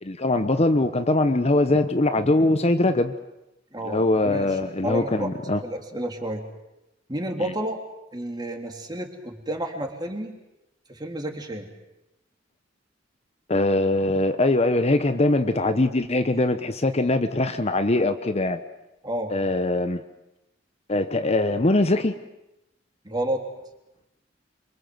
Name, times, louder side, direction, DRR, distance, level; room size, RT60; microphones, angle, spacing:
voice 1, 0.0-3.1 3.9-5.6 7.4-7.5 13.5-18.6 19.3-20.0 20.9-22.2, left 2 dB, 35° left, 9 dB, 1.0 m, -22 dB
voice 2, 3.7-4.5 4.8-5.3 5.6-6.4 7.1-7.8 8.1-10.3 10.9-11.7 19.0-19.3 23.0-23.4, right 1 dB, 20° right, 3 dB, 3.5 m, -30 dB
27.0 x 24.5 x 7.9 m, 0.92 s
head